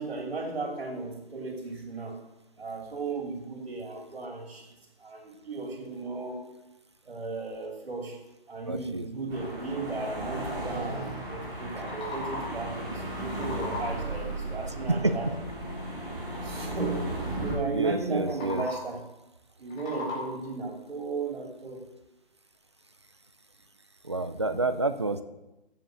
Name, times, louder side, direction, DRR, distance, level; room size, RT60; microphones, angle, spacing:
voice 1, 0.0-2.2 2.6-4.7 5.0-6.4 7.1-8.2 8.5-15.3 16.4-19.0 19.6-21.9, right 3 dB, 75° right, 1 dB, 2.9 m, -35 dB
voice 2, 8.7-9.1 14.9-15.4 17.7-18.6 24.0-25.2, right 2 dB, 30° right, 10 dB, 0.4 m, -28 dB
sound 1, 9.3-17.5, right 1 dB, 10° right, 3.4 m, -35 dB
sound 2, 11.8-12.7 13.0-14.2 18.2-19.0 19.5-20.6, left 2 dB, 5° left, 0.7 m, -39 dB
9.2 x 7.6 x 6.3 m, 0.99 s
hypercardioid pair, 165°, 30 cm